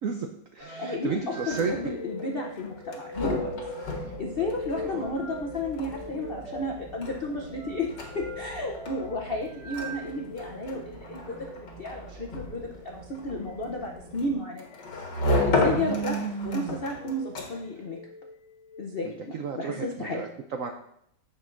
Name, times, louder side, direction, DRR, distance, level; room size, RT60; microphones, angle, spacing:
voice 1, 0.0-1.9 4.8-5.1 15.6-16.8 19.0-20.7, right 6 dB, 80° right, 5 dB, 0.7 m, -33 dB
sound 1, 0.6-10.5 11.3-11.6 13.6-13.9 14.7-15.2 15.8-16.1 16.8-17.3 17.8-18.9, equal, 45° left, 1.5 m, -41 dB
voice 2, 0.8-3.5 3.9-7.9 8.1-14.7 15.3-16.2 16.4-18.0 18.8-20.2, left 2 dB, 85° left, 1 dB, 0.5 m, -33 dB
sound 2, 1.3-17.8, left 2 dB, 65° left, 2.0 m, -34 dB
sound 3, 4.0-14.4, right 2 dB, 50° right, 1.4 m, -47 dB
15.0 x 5.2 x 2.5 m, 0.73 s
omnidirectional pair, 2.1 m